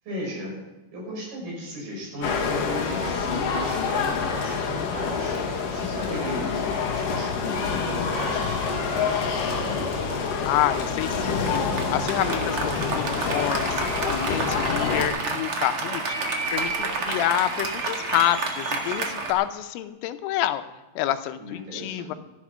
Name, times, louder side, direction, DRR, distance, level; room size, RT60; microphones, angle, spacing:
voice 1, 0.1-0.6 0.9-5.4 5.7-9.8 21.4-22.2, equal, 50° right, -2 dB, 7.5 m, -36 dB
sound 1, 2.2-15.1, left 5 dB, 55° left, 2.7 m, -27 dB
voice 2, 10.4-13.8 14.1-16.2 16.5-20.6 21.0-22.2, left 13 dB, 90° left, 10 dB, 3.4 m, -28 dB
Applause, 11.5-19.3, right 3 dB, 85° right, 1.2 m, -30 dB
15.0 x 11.5 x 6.2 m, 1.1 s
omnidirectional pair, 5.7 m